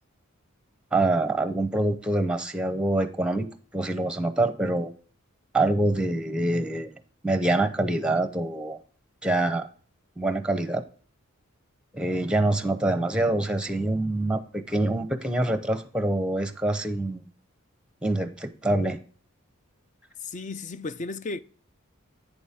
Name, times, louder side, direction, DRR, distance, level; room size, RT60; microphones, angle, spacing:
voice 1, 0.9-3.5 3.7-4.9 5.5-6.9 7.2-8.8 9.2-9.7 10.2-10.8 11.9-17.2 18.0-19.0, right 2 dB, 5° right, 0.7 m, -25 dB
voice 2, 20.2-21.4, left 3 dB, 35° left, 0.5 m, -34 dB
9.2 x 7.1 x 3.6 m
head